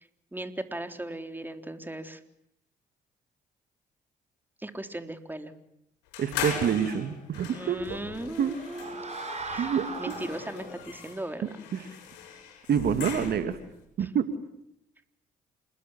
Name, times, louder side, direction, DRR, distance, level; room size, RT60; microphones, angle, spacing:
voice 1, 0.3-2.2 4.6-5.5 7.5-9.2 9.5-9.7 10.0-11.4 14.0-14.1, right 1 dB, 10° right, 7 dB, 3.8 m, -37 dB
sound 1, 6.1-13.7, left 7 dB, 80° left, 7.6 m, -40 dB
voice 2, 6.2-8.0 8.4-8.5 9.6-10.1 11.7-11.9 12.7-13.6 14.0-14.3, right 8 dB, 60° right, 10 dB, 2.2 m, -27 dB
sound 2, 7.9-10.9, right 3 dB, 40° right, 6.9 m, -39 dB
28.5 x 21.0 x 10.0 m, 0.79 s
hypercardioid pair, 45°, 18 cm